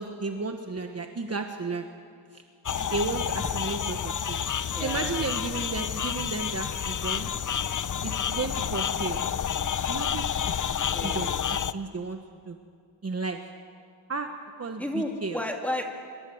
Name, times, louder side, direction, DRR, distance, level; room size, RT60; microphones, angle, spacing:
voice 1, 0.0-1.8 2.3-2.4 2.9-4.4 4.8-7.3 8.0-9.2 9.9-12.2 12.5-12.6 13.0-13.4 14.1-14.3 14.6-15.4, right 3 dB, 35° right, 4 dB, 1.3 m, -33 dB
sound 1, 2.7-11.7, left 8 dB, 45° left, 0.6 m, -29 dB
voice 2, 4.7-5.3 10.9-11.7 14.8-15.8, left 1 dB, 5° left, 1 dB, 2.6 m, -33 dB
25.5 x 22.5 x 7.9 m, 2.3 s
wide cardioid pair, 160°, 45 cm